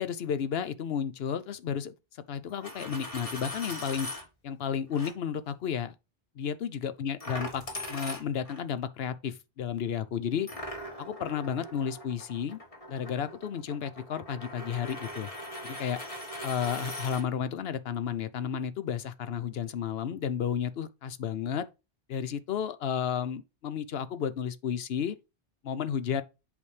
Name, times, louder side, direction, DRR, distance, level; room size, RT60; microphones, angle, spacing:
voice 1, 0.0-1.9 2.3-4.1 4.4-5.9 6.4-7.6 7.9-10.5 11.0-12.6 12.9-15.3 15.6-16.0 16.4-21.7 22.1-25.2 25.6-26.2, left 8 dB, 75° left, 0.9 m, -32 dB
Coin (dropping), 2.5-4.2 4.9-5.1 7.2-8.6 10.5-17.2, left 1 dB, 35° left, 1.7 m, -40 dB
8.1 x 5.1 x 3.2 m
omnidirectional pair, 1.0 m